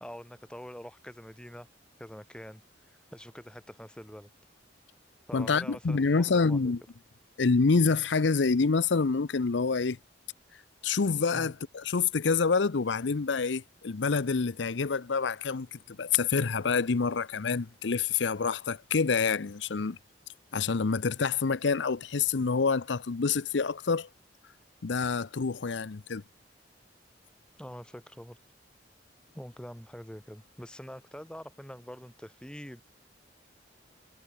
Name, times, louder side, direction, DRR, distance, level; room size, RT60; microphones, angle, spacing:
voice 1, 0.0-1.7 2.0-4.3 5.3-6.7 11.3-11.5 27.5-28.4 29.3-32.8, equal, 5° left, 1.3 m, -45 dB
voice 2, 5.3-6.8 7.4-10.0 10.8-20.0 20.5-24.1 24.8-26.2, left 4 dB, 75° left, 0.7 m, -27 dB
head